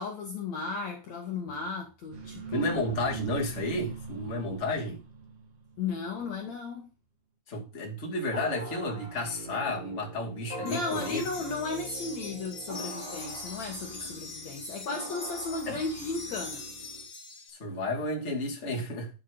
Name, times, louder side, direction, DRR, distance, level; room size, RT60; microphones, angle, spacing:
voice 1, 0.0-2.7 5.8-6.9 10.6-16.7, left 4 dB, 60° left, 2.3 m, -35 dB
sound 1, 2.1-6.1, right 5 dB, 50° right, 2.6 m, -41 dB
voice 2, 2.5-5.0 7.5-11.2 14.0-14.1 15.7-15.8 17.5-19.1, left 1 dB, 20° left, 2.4 m, -32 dB
sound 2, 8.3-17.0, right 1 dB, 10° right, 1.9 m, -43 dB
sound 3, 10.7-17.5, left 3 dB, 40° left, 2.1 m, -43 dB
9.3 x 8.3 x 3.7 m
omnidirectional pair, 4.1 m